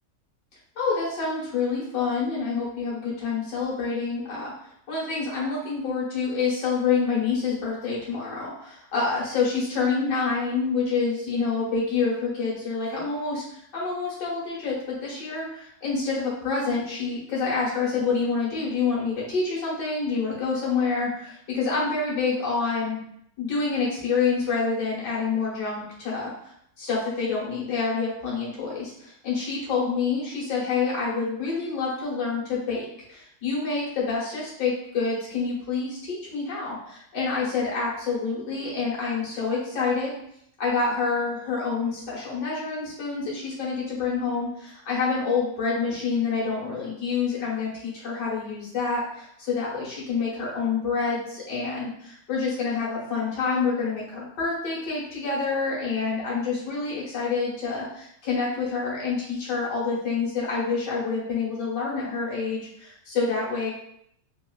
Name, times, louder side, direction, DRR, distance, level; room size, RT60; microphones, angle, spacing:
voice 1, 0.8-4.5 4.9-23.0 23.4-26.3 26.8-40.1 40.6-63.7, left 4 dB, 75° left, -5 dB, 1.8 m, -27 dB
3.7 x 2.4 x 2.2 m, 0.71 s
omnidirectional pair, 1.9 m